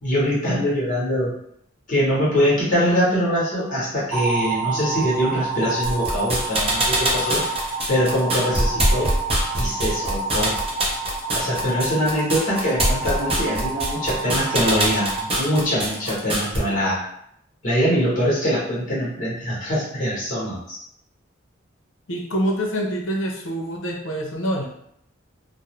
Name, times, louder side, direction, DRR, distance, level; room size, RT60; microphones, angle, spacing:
voice 1, 0.0-1.3 1.9-9.1 9.5-10.5 11.3-17.0 17.6-20.8, equal, 40° left, -7 dB, 1.0 m, -23 dB
sound 1, 4.1-16.3, right 3 dB, 15° right, 1.0 m, -29 dB
sound 2, 5.8-16.6, right 1 dB, 30° right, 0.6 m, -23 dB
voice 2, 22.1-24.6, equal, 70° left, 0 dB, 0.6 m, -25 dB
2.5 x 2.0 x 2.9 m, 0.73 s
head